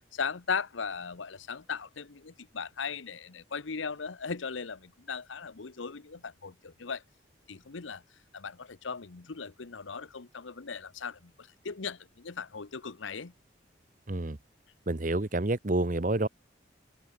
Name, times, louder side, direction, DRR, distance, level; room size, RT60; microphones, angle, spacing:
voice 1, 0.1-7.0 7.5-8.0 8.3-13.3, left 5 dB, 80° left, 0.9 m, -38 dB
voice 2, 14.1-14.4 14.9-16.3, right 2 dB, 40° right, 1.0 m, -28 dB
open air
head